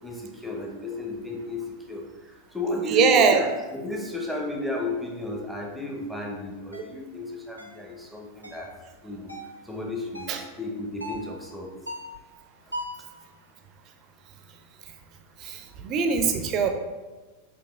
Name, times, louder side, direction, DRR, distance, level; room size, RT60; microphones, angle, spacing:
voice 1, 0.0-8.7 9.0-9.3 9.6-10.3 10.6-11.7 12.6-12.7, left 2 dB, ahead, -1 dB, 0.7 m, -33 dB
voice 2, 2.9-3.4 10.3-10.4 15.4-15.6 15.8-16.7, right 6 dB, 35° right, 5 dB, 0.5 m, -21 dB
sound 1, 6.7-6.9 7.6-7.8 8.4-8.7 9.3-9.6 10.1-10.5 11.0-11.3 11.9-12.2 12.7-13.1, equal, 90° right, 0.5 m, -38 dB
5.9 x 2.8 x 2.4 m, 1.2 s
figure-of-eight pair, 90°, 0 cm